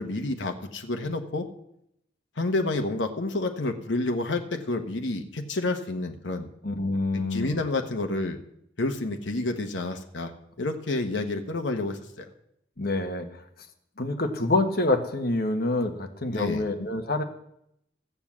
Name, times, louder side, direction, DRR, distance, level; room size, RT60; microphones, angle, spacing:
voice 1, 0.0-1.5 2.4-6.5 7.1-8.4 8.8-10.3 10.6-12.3 16.3-16.6, left 2 dB, 80° left, 4 dB, 1.1 m, -29 dB
voice 2, 6.6-7.6 12.8-13.3 14.0-17.2, left 2 dB, 55° left, 5 dB, 1.4 m, -26 dB
15.0 x 7.1 x 7.3 m, 0.76 s
head